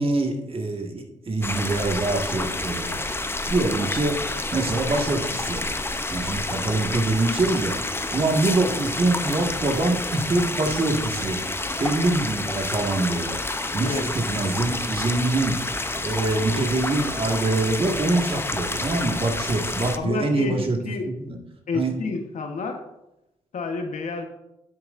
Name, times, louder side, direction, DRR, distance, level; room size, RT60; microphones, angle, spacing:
voice 1, 0.0-3.0 3.5-4.2 4.5-5.6 6.1-7.8 8.1-11.4 11.8-13.4 13.7-15.6 16.0-20.8 21.0-21.4 21.7-21.9, right 2 dB, 45° right, 2 dB, 1.8 m, -24 dB
sound 1, 1.4-20.0, left 2 dB, 15° left, 0.7 m, -29 dB
voice 2, 19.9-21.1 21.7-22.8 23.5-24.3, left 3 dB, 65° left, 5 dB, 1.2 m, -29 dB
9.7 x 8.0 x 2.6 m, 0.89 s
cardioid pair, 60°, 13 cm